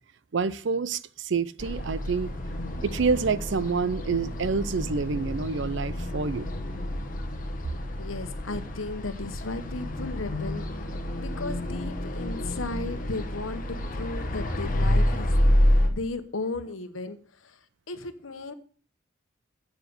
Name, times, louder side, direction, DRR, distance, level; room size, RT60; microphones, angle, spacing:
voice 1, 0.3-2.3 2.8-6.5, right 5 dB, 65° right, 0.5 m, -27 dB
sound 1, 1.6-15.9, left 1 dB, 40° left, 1.2 m, -28 dB
voice 2, 7.7-10.7 11.2-15.3 15.9-17.6 17.9-18.5, left 3 dB, 85° left, 1.1 m, -35 dB
8.1 x 7.0 x 6.6 m
head